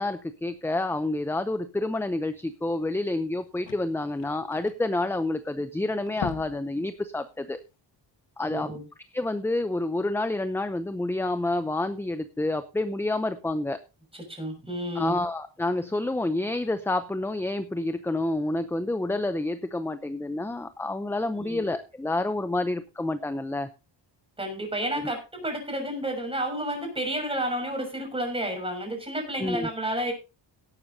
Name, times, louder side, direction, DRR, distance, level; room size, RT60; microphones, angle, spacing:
voice 1, 0.0-7.6 8.4-8.7 9.1-13.8 15.0-23.7 25.0-25.1 29.4-29.7, left 2 dB, 5° left, 11 dB, 0.6 m, -28 dB
sound 1, 2.6-2.7 3.0-3.1 3.3-5.6 5.9-6.7 7.1-7.2 7.7-7.8, left 9 dB, 90° left, 2.0 m, -40 dB
voice 2, 8.5-8.8 14.1-15.2 21.3-21.6 24.4-30.1, right 1 dB, 10° right, 3 dB, 6.3 m, -31 dB
17.5 x 12.0 x 2.8 m, 0.29 s
wide cardioid pair, 165°, 44 cm